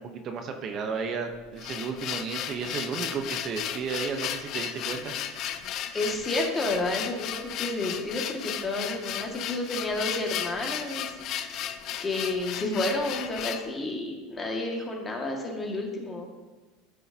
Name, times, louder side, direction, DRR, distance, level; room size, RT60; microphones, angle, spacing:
voice 1, 0.0-5.1, right 5 dB, 45° right, 5 dB, 1.0 m, -33 dB
sound 1, 1.3-13.7, left 10 dB, 50° left, 0.6 m, -35 dB
voice 2, 5.9-11.6 12.0-16.3, left 2 dB, 20° left, 0 dB, 2.0 m, -31 dB
13.5 x 6.3 x 2.9 m, 1.3 s
supercardioid pair, 100°, 0 cm